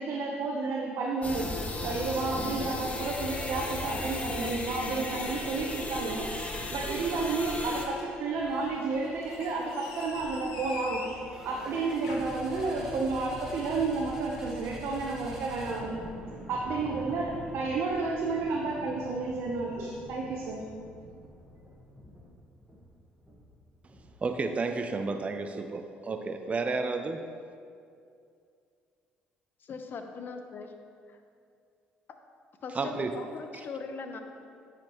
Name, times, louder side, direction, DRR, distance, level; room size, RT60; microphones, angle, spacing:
voice 1, 0.0-1.5 1.8-11.0 11.4-16.0 16.5-20.6, right 3 dB, 70° right, -1 dB, 0.7 m, -31 dB
sound 1, 1.2-7.9, left 2 dB, 30° left, 0.9 m, -35 dB
sound 2, 4.3-5.4 5.8-6.7 7.1-7.9 9.3-11.3 11.8-12.2, left 4 dB, 85° left, 0.8 m, -45 dB
sound 3, 6.3-7.1 7.5-24.4, equal, 10° right, 1.4 m, -47 dB
voice 2, 24.2-27.2 32.7-33.2 33.5-33.7, right 3 dB, 30° right, 6 dB, 0.4 m, -32 dB
voice 3, 29.6-30.7 32.6-34.2, left 4 dB, 50° left, 6 dB, 0.7 m, -40 dB
9.2 x 5.0 x 3.0 m, 2.4 s
supercardioid pair, 70°, 4 cm